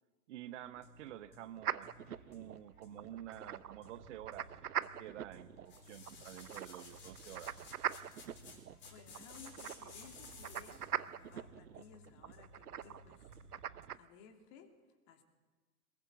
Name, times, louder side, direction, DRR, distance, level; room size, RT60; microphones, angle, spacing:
voice 1, 0.3-1.9 2.3-4.5 5.0-7.5, right 12 dB, 50° right, 14 dB, 1.0 m, -49 dB
sound 1, 0.6-13.9, left 2 dB, 75° left, 4.4 m, -62 dB
sound 2, 1.6-14.0, right 9 dB, 75° right, 0.8 m, -44 dB
sound 3, 5.7-10.9 11.4-11.5, left 4 dB, 25° left, 4.7 m, -55 dB
voice 2, 8.9-14.7 15.1-15.2, left 6 dB, 40° left, 5 dB, 3.0 m, -59 dB
22.5 x 20.5 x 6.9 m, 1.3 s
figure-of-eight pair, 90°, 46 cm